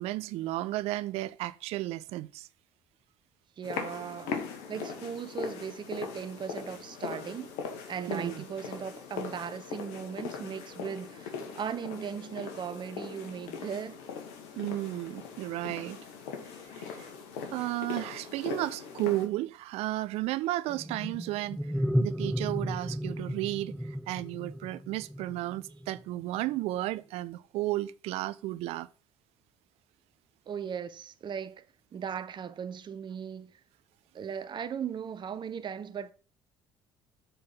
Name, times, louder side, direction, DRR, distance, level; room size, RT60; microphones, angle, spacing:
voice 1, 0.0-2.5 8.1-8.4 14.6-16.0 16.8-17.1 17.5-21.6 22.0-28.9, right 16 dB, 65° right, 0.5 m, -33 dB
sound 1, 3.6-19.3, left 6 dB, 70° left, 1.5 m, -40 dB
voice 2, 3.6-4.4 4.7-7.5 7.9-14.0 30.5-31.6 31.9-33.5 34.1-36.1, right 7 dB, 45° right, 0.9 m, -38 dB
sound 2, 20.7-26.0, equal, ahead, 0.4 m, -33 dB
6.7 x 4.5 x 5.5 m
hypercardioid pair, 55°, 11 cm